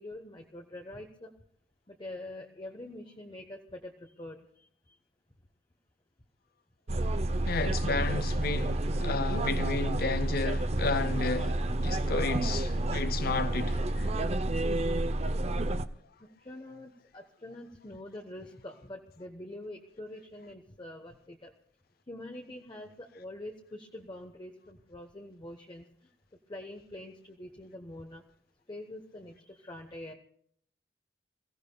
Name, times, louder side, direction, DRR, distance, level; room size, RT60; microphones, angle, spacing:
voice 1, 0.0-1.3 1.9-4.7 16.2-21.5 22.1-25.9 26.5-28.2 28.7-30.1, left 1 dB, 25° left, 1.0 m, -45 dB
sound 1, 6.9-15.8, right 1 dB, 35° right, 0.6 m, -29 dB
voice 2, 7.5-14.1, left 4 dB, 55° left, 0.5 m, -33 dB
27.5 x 16.0 x 2.3 m
head